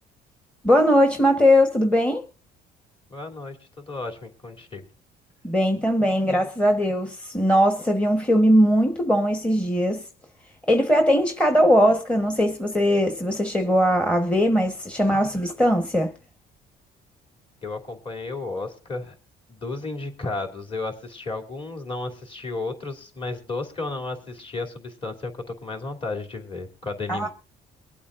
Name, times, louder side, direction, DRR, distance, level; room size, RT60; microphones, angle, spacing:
voice 1, 0.6-2.2 5.4-10.0 10.7-16.1 27.1-27.3, equal, 5° left, 1.2 m, -20 dB
voice 2, 3.1-4.9 17.6-19.2 19.5-27.3, left 3 dB, 30° left, 3.1 m, -33 dB
23.5 x 8.5 x 2.6 m
cardioid pair, 110°, 17 cm